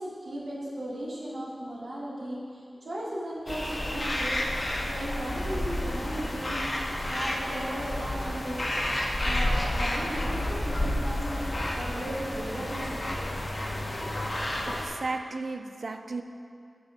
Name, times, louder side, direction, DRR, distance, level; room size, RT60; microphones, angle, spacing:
voice 1, 0.0-4.4 4.8-6.6 7.1-8.6 9.2-13.1 13.9-14.1, right 1 dB, 80° right, -6 dB, 1.9 m, -36 dB
sound 1, 3.5-14.9, left 1 dB, 40° left, 1.0 m, -30 dB
voice 2, 14.7-16.2, right 3 dB, 65° right, 7 dB, 0.5 m, -34 dB
6.8 x 6.3 x 5.3 m, 2.3 s
wide cardioid pair, 65°, 0 cm